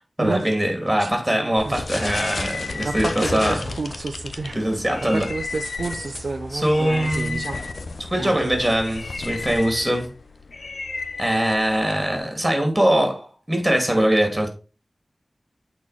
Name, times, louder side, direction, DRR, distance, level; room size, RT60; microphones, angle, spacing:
voice 1, 0.2-3.6 4.5-5.3 6.5-7.5 8.1-10.1 11.2-14.5, right 1 dB, 15° right, 2.6 m, -22 dB
sound 1, 1.6-12.2, left 3 dB, 85° left, 0.8 m, -32 dB
voice 2, 2.8-4.6 5.1-7.6 8.2-8.6, right 3 dB, 75° right, 0.5 m, -30 dB
8.6 x 4.3 x 4.2 m
wide cardioid pair, 80°, 0 cm